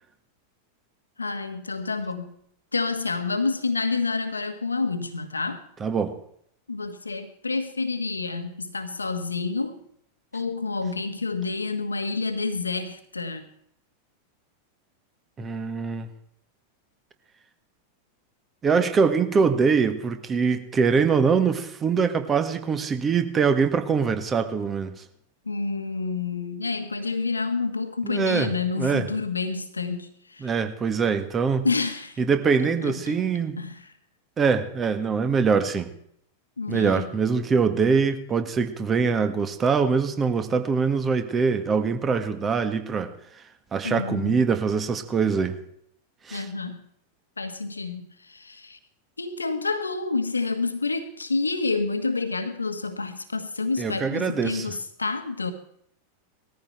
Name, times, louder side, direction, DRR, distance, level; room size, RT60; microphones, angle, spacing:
voice 1, 1.2-2.3 2.7-5.6 6.7-9.8 10.3-13.5 25.4-30.5 31.6-32.2 32.8-33.8 36.6-37.1 43.8-44.4 46.3-46.8 47.4-48.8 49.2-55.5, left 4 dB, 80° left, 9 dB, 1.5 m, -29 dB
voice 2, 5.8-6.2 15.4-16.1 18.6-24.9 28.0-28.5 28.8-29.1 30.4-31.7 32.2-33.6 34.4-35.9 36.7-43.1 43.7-45.6 46.3-46.5 53.8-54.7, right 5 dB, 20° right, 8 dB, 1.7 m, -23 dB
19.5 x 14.0 x 4.5 m, 0.68 s
figure-of-eight pair, 90°, 0 cm